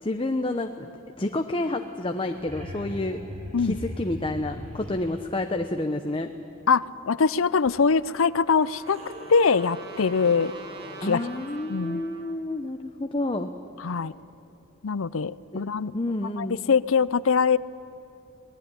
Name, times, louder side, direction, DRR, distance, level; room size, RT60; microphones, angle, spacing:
voice 1, 0.0-0.9 1.2-3.2 3.6-6.3 11.0-13.5 15.5-15.6 15.9-16.6, left 2 dB, 25° left, 6 dB, 0.8 m, -29 dB
sound 1, 2.1-5.2 7.6-7.7 8.4-11.5 14.0-14.1, equal, 30° right, 6.0 m, -40 dB
voice 2, 6.7-9.0 9.3-10.5 11.0-11.2 11.7-12.0 13.8-14.1 14.8-15.9 16.4-17.6, left 5 dB, 70° left, 18 dB, 0.6 m, -23 dB
Trumpet, 7.7-12.4, right 5 dB, 50° right, 2.2 m, -46 dB
25.5 x 19.5 x 9.9 m, 2.9 s
head